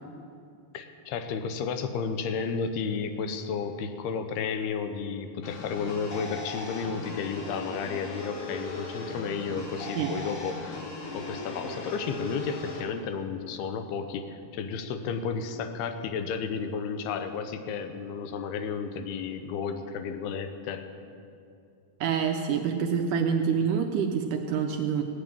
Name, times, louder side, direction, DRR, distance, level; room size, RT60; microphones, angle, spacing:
voice 1, 0.7-10.9 11.1-20.9, left 6 dB, 90° left, 8 dB, 2.9 m, -32 dB
sound 1, 5.4-12.8, left 2 dB, 55° left, 3.6 m, -38 dB
voice 2, 22.0-25.0, right 7 dB, 75° right, 4 dB, 2.0 m, -27 dB
17.5 x 9.2 x 8.9 m, 2.6 s
omnidirectional pair, 4.5 m